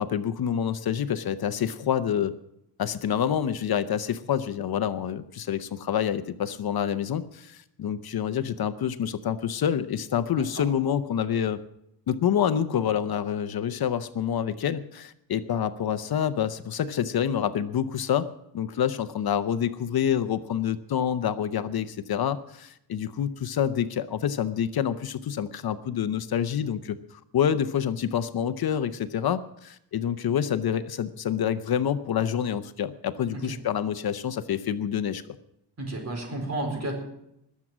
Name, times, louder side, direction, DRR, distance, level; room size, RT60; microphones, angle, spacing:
voice 1, 0.0-2.3 2.8-11.6 12.1-18.3 18.5-35.3, left 9 dB, 60° left, 12 dB, 0.8 m, -27 dB
voice 2, 35.8-37.0, right 2 dB, 40° right, 2 dB, 4.4 m, -32 dB
20.5 x 7.5 x 6.1 m, 0.79 s
wide cardioid pair, 135°, 41 cm